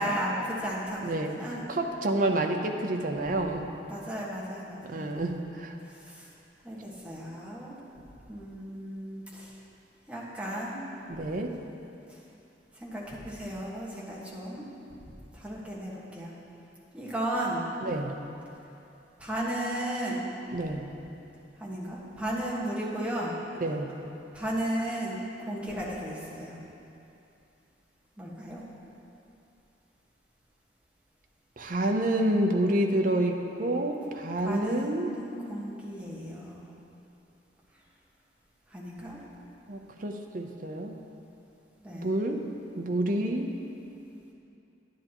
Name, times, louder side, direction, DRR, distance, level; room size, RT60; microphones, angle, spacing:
voice 1, 0.0-1.6 3.9-5.1 5.9-6.3 6.6-7.8 8.3-9.6 10.1-10.8 12.1-12.2 12.7-14.6 15.3-16.3 16.9-17.7 19.2-20.4 21.6-23.4 24.3-26.6 28.2-28.6 34.4-36.6 38.7-39.2 41.8-42.1, right 1 dB, 5° right, -7 dB, 1.5 m, -34 dB
voice 2, 1.0-1.3 1.7-3.6 4.8-5.7 11.1-11.5 17.8-18.1 20.5-20.8 23.6-23.9 31.6-35.1 39.7-41.0 41.9-42.4 42.7-43.5, right 1 dB, 50° right, 4 dB, 0.7 m, -28 dB
10.0 x 10.0 x 3.0 m, 2.8 s
head